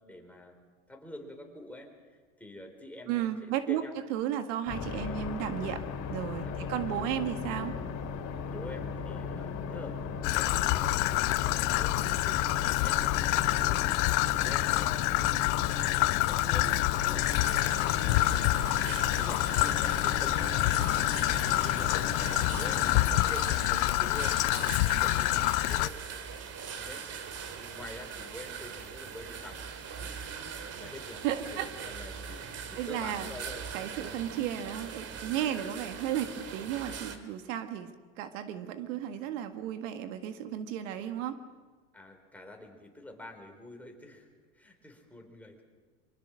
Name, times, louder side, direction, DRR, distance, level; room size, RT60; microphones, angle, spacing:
voice 1, 0.0-4.3 4.9-5.2 6.4-6.7 8.5-15.4 16.3-25.9 26.7-27.2 27.5-29.6 30.0-31.2 31.5-33.6 41.9-45.6, left 1 dB, 5° left, 2 dB, 4.4 m, -47 dB
voice 2, 3.1-3.8 4.1-5.8 6.1-7.8 31.2-31.7 32.8-33.3 33.7-41.4, right 10 dB, 75° right, 8 dB, 1.7 m, -34 dB
sound 1, 4.7-23.1, left 5 dB, 45° left, 3.5 m, -37 dB
Traffic noise roadway noise / Trickle dribble, 10.2-25.9, left 19 dB, 65° left, 0.8 m, -27 dB
sound 2, 17.2-37.2, right 6 dB, 40° right, 2.5 m, -41 dB
24.5 x 23.5 x 6.4 m, 1.4 s
supercardioid pair, 105°, 38 cm